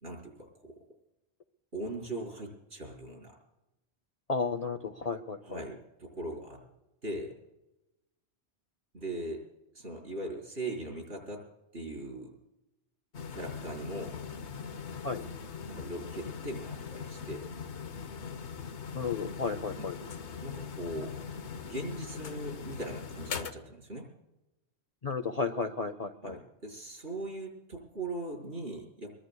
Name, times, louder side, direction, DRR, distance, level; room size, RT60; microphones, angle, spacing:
voice 1, 0.0-0.8 1.7-3.4 5.4-6.6 7.0-7.4 8.9-9.4 9.7-11.4 11.7-12.4 13.3-14.2 15.7-17.5 19.8-19.9 20.4-21.1 21.5-24.1 26.2-29.1, right 1 dB, 70° right, -2 dB, 4.8 m, -40 dB
voice 2, 4.3-5.6 15.0-15.2 18.9-20.0 25.0-26.4, left 4 dB, 45° left, 7 dB, 0.6 m, -33 dB
sound 1, 13.1-23.5, left 6 dB, 85° left, 1.2 m, -41 dB
23.0 x 22.5 x 2.3 m, 0.96 s
omnidirectional pair, 1.1 m